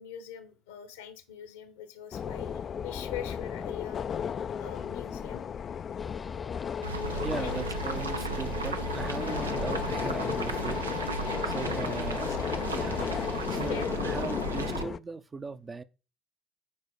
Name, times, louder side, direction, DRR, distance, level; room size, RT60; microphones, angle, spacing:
voice 1, 0.0-4.2 4.6-5.4 7.4-7.7 11.9-12.0 13.5-13.9, left 9 dB, 75° left, 1.1 m, -43 dB
sound 1, 2.1-15.0, left 7 dB, 40° left, 0.3 m, -34 dB
sound 2, 6.0-13.8, left 3 dB, 20° left, 0.8 m, -45 dB
sound 3, 6.8-14.8, right 4 dB, 85° right, 0.5 m, -35 dB
voice 2, 7.2-11.2 11.4-12.4 12.7-13.1 13.5-15.8, right 4 dB, 25° right, 0.6 m, -38 dB
9.8 x 4.1 x 4.8 m
figure-of-eight pair, 60°, 0 cm